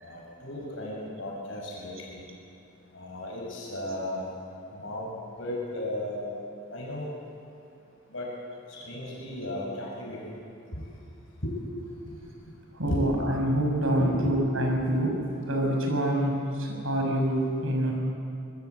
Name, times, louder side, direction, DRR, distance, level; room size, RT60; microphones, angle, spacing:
voice 1, 0.0-2.2 2.9-4.4 4.7-5.1 5.4-6.3 6.7-7.1 8.1-8.3 8.7-10.8 11.4-11.5 12.1-12.2 12.9-13.0 14.0-14.4 14.9-15.0, left 1 dB, 65° left, -3 dB, 6.2 m, -35 dB
voice 2, 12.7-15.2 15.5-17.9, right 1 dB, 75° right, 1 dB, 6.1 m, -26 dB
25.5 x 21.0 x 8.1 m, 2.6 s
head